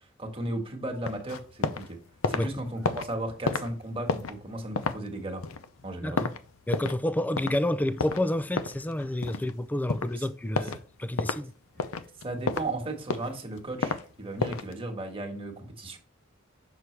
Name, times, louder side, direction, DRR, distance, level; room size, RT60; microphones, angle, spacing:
voice 1, 0.2-2.0 2.3-5.4 5.8-6.2 10.2-10.3 12.2-16.0, right 1 dB, 25° right, 1.5 m, -35 dB
sound 1, 1.0-1.9 2.1-7.1 7.4-7.6 8.0-9.6 9.9-10.2 10.6-10.8 11.2-11.4 11.8-12.7 13.0-14.0 14.4-14.7, left 4 dB, 85° left, 0.6 m, -31 dB
voice 2, 6.0-6.3 6.7-11.5, left 1 dB, 10° left, 0.4 m, -29 dB
6.8 x 6.0 x 3.3 m
head